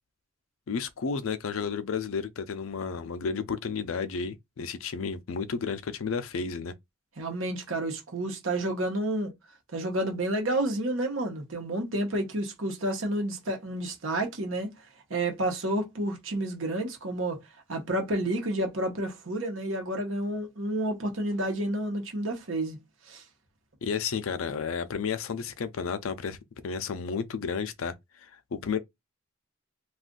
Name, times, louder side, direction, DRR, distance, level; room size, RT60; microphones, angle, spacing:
voice 1, 0.7-6.7 23.8-26.4 26.6-27.9 28.2-28.8, left 5 dB, 85° left, 0.4 m, -32 dB
voice 2, 7.2-9.3 9.7-14.7 15.1-17.4 17.7-22.8 23.1-23.2, right 1 dB, 75° right, 0.9 m, -30 dB
2.4 x 2.3 x 3.7 m
head